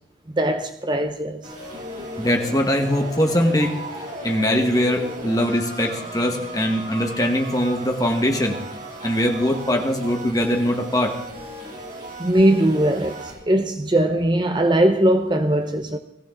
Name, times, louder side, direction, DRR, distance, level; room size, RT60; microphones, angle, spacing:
voice 1, 0.3-1.4 12.2-16.0, right 1 dB, 25° right, 0.7 m, -20 dB
sound 1, 1.4-13.3, right 1 dB, 45° right, 6.9 m, -36 dB
voice 2, 2.2-3.8 4.2-8.6 9.0-11.2, equal, 20° left, 1.7 m, -21 dB
20.0 x 15.0 x 4.0 m
head